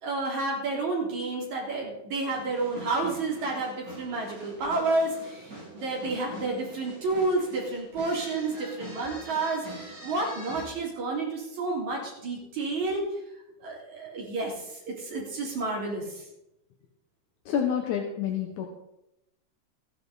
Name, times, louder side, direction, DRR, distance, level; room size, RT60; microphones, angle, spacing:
voice 1, 0.0-13.0 13.6-16.3, right 3 dB, 65° right, -3 dB, 4.8 m, -30 dB
sound 1, 2.3-10.7, right 2 dB, 25° right, 5.1 m, -44 dB
voice 2, 17.5-18.7, left 8 dB, 75° left, 2 dB, 2.5 m, -28 dB
15.0 x 10.5 x 4.0 m, 0.86 s
omnidirectional pair, 3.5 m